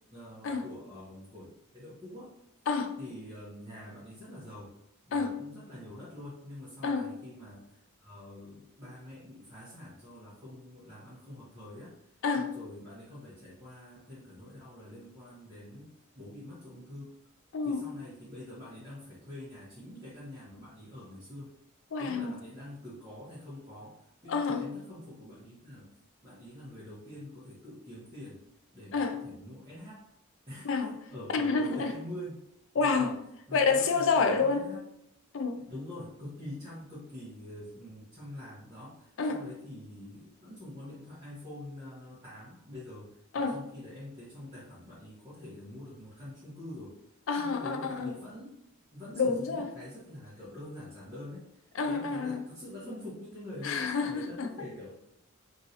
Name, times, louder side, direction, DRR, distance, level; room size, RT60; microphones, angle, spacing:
voice 1, 0.1-1.5 1.7-2.3 3.0-4.7 5.1-7.6 8.0-11.9 12.3-15.9 16.2-17.1 17.6-21.5 22.0-23.9 24.2-25.9 26.2-28.3 28.7-30.0 30.5-30.7 31.1-32.3 32.8-33.1 33.5-34.8 35.7-38.9 39.3-43.1 43.4-46.9 47.4-48.5 48.9-51.4 51.8-54.9, left 1 dB, 20° right, -10 dB, 0.8 m, -45 dB
voice 2, 17.5-17.9 21.9-22.4 24.3-24.7 28.9-29.2 30.6-31.0 31.3-32.0 32.7-33.2 33.5-34.7 35.3-35.6 39.2-39.4 43.3-43.6 47.3-48.2 49.2-49.7 51.7-52.4 53.6-54.7, left 4 dB, 60° left, 6 dB, 0.4 m, -29 dB
3.1 x 2.6 x 2.7 m, 0.79 s
head